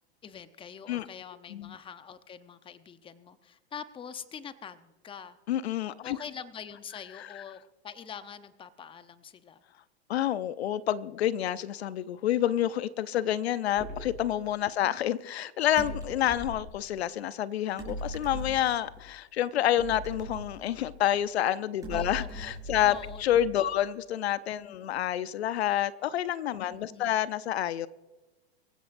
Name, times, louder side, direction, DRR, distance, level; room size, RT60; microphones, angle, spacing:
voice 1, 0.2-5.4 6.0-9.6 14.8-14.9 16.6-16.7 21.9-22.4 22.8-23.2 23.6-23.8 24.7-24.9 26.7-27.2, left 7 dB, 15° left, 0.8 m, -45 dB
voice 2, 5.5-6.2 7.2-7.4 10.1-27.9, left 11 dB, 75° left, 0.7 m, -28 dB
sound 1, 13.8-14.2 15.8-16.7 17.8-19.0 19.8-21.1 21.8-23.7, equal, 10° right, 5.8 m, -40 dB
24.5 x 15.5 x 2.6 m
hypercardioid pair, 110°, 32 cm